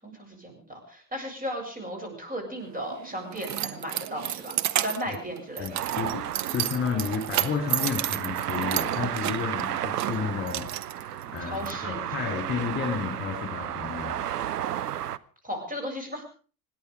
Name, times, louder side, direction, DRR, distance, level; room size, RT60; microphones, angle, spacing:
voice 1, 0.0-5.8 11.4-12.1 15.4-16.2, equal, 20° right, 4 dB, 7.7 m, -35 dB
Keys jangling, 2.6-11.7, right 12 dB, 35° right, 1.2 m, -32 dB
voice 2, 5.6-10.7 11.0-14.2, left 6 dB, 25° left, 4 dB, 3.9 m, -32 dB
sound 1, 5.7-15.2, right 11 dB, 80° right, 0.7 m, -33 dB
26.5 x 10.5 x 5.0 m, 0.39 s
figure-of-eight pair, 65°, 46 cm